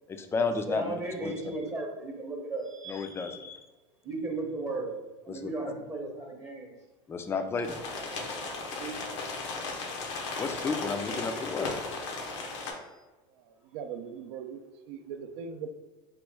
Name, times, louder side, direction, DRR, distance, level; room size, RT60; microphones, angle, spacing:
voice 1, 0.1-0.9 1.2-1.3 2.9-3.7 5.3-5.5 7.1-7.8 10.4-11.8, left 4 dB, 15° left, 6 dB, 0.3 m, -32 dB
voice 2, 0.7-3.3 4.0-6.7 8.8-9.4, right 2 dB, 20° right, -1 dB, 0.7 m, -36 dB
sound 1, 7.6-12.7, left 3 dB, 85° left, 0.7 m, -36 dB
voice 3, 13.7-14.6 14.9-15.7, right 7 dB, 70° right, 6 dB, 0.4 m, -39 dB
3.0 x 2.3 x 3.3 m, 1.2 s
supercardioid pair, 110°, 14 cm